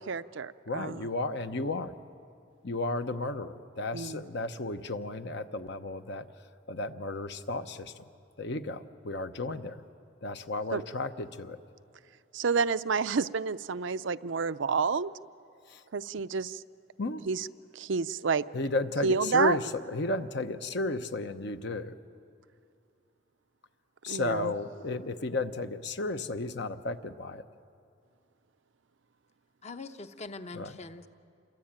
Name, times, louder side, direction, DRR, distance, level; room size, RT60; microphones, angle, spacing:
voice 1, 0.1-1.1 3.9-4.2 10.7-10.8 12.3-15.1 15.9-16.6 17.3-17.5 17.7-18.4 19.0-19.6 24.1-24.5, right 5 dB, 65° right, 13 dB, 0.5 m, -29 dB
voice 2, 0.7-1.9 2.6-6.2 6.7-7.9 8.4-9.8 10.2-11.6 15.7-15.8 17.0-17.2 18.2-22.0 24.0-27.4 30.5-30.7, left 2 dB, 60° left, 9 dB, 1.0 m, -33 dB
voice 3, 29.6-31.1, left 3 dB, 35° left, 8 dB, 0.9 m, -43 dB
28.0 x 23.0 x 8.9 m, 2.5 s
head